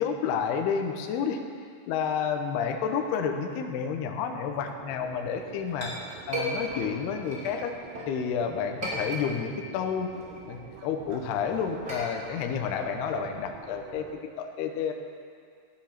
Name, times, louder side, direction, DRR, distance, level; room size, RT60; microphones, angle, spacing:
voice 1, 0.0-1.4 1.9-5.9 6.3-7.8 8.1-10.1 10.5-14.1 14.4-14.9, left 7 dB, 75° left, 4 dB, 2.7 m, -30 dB
sound 1, 4.5-14.2, right 8 dB, 85° right, 3.1 m, -48 dB
Chink clink, 5.3-8.1 8.6-9.6 10.0-14.0, right 1 dB, 25° right, 2.7 m, -37 dB
16.0 x 11.0 x 5.8 m, 2.3 s
omnidirectional pair, 5.1 m